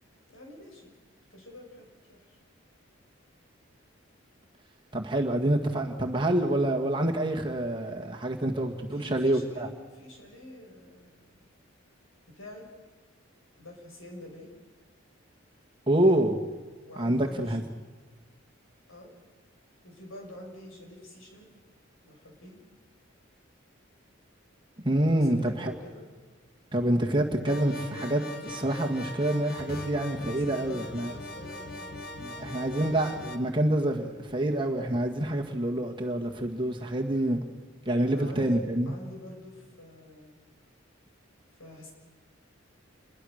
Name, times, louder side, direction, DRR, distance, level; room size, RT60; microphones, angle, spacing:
voice 1, 0.3-1.0 1.3-2.4 8.9-11.5 12.3-12.7 13.6-14.6 16.9-17.6 18.9-19.1 19.8-21.5 22.0-22.6 25.1-26.1 27.7-28.1 30.3-32.8 38.1-40.4 41.6-41.9, left 1 dB, 85° left, 1 dB, 7.0 m, -47 dB
voice 2, 4.9-9.7 15.9-16.4 17.0-17.6 24.8-25.7 26.7-31.1 32.2-37.4 37.9-38.9, right 1 dB, 25° right, 1 dB, 1.8 m, -27 dB
sound 1, 27.4-33.4, left 2 dB, 45° left, 1.5 m, -40 dB
28.0 x 22.0 x 6.6 m, 1.4 s
head